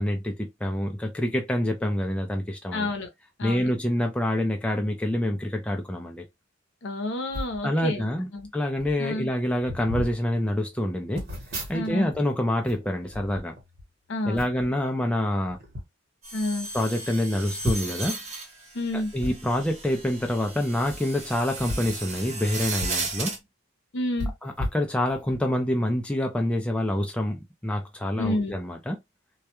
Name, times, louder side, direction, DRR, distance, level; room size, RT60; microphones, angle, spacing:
voice 1, 0.0-2.9 3.4-6.2 7.6-8.3 8.5-11.3 11.7-13.5 14.2-15.6 16.7-18.2 19.1-23.4 24.4-29.0, left 1 dB, 5° left, 0.3 m, -26 dB
voice 2, 2.7-3.1 3.4-3.7 6.8-8.5 9.0-9.3 11.7-12.1 14.1-14.4 16.3-16.7 18.7-19.1 23.9-24.3 28.2-28.6, left 1 dB, 65° left, 0.7 m, -29 dB
sound 1, 7.3-7.6 8.4-8.5 8.7-9.0 9.6-10.2 11.1-12.2 12.5-13.9 14.4-14.7 15.5-15.9 16.4-16.5 16.7-16.8 17.6-18.1 19.2-19.3 20.8-21.0 21.5-23.1 23.4-23.5 24.2-25.4 25.9-26.0, left 1 dB, 55° right, 1.0 m, -34 dB
sound 2, 16.2-23.4, right 3 dB, 35° right, 0.7 m, -35 dB
2.2 x 2.1 x 2.8 m
head